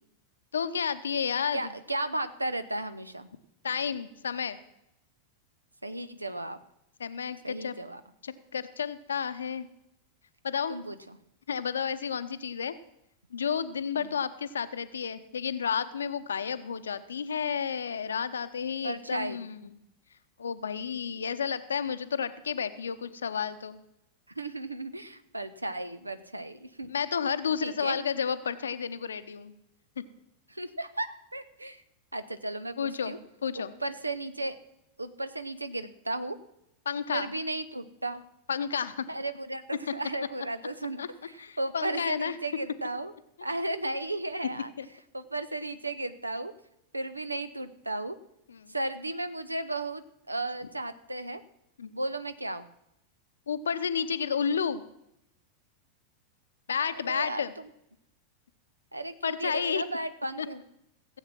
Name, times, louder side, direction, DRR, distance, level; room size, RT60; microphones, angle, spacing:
voice 1, 0.5-1.7 3.6-4.6 7.0-7.7 8.2-9.7 10.4-10.7 11.5-12.8 13.3-19.7 20.4-23.8 26.8-29.5 32.8-33.1 33.4-33.7 36.9-37.3 38.5-39.1 41.0-41.1 41.4-42.4 44.8-44.9 48.5-48.7 51.8-51.9 53.5-54.8 56.7-57.5 59.2-59.8 60.4-60.5, left 7 dB, 70° left, 12 dB, 0.7 m, -31 dB
voice 2, 1.5-3.3 5.8-6.6 7.4-8.0 10.7-11.2 13.9-14.1 18.8-19.4 24.3-26.9 27.6-28.0 30.5-31.8 32.1-33.2 33.5-34.6 35.0-36.4 37.1-38.2 39.1-43.1 43.4-44.7 45.1-46.5 46.9-48.2 48.7-51.4 51.9-52.7 56.9-57.7 58.9-60.6, right 2 dB, 85° right, 12 dB, 0.7 m, -35 dB
16.0 x 8.2 x 6.0 m, 0.82 s
figure-of-eight pair, 90°, 0 cm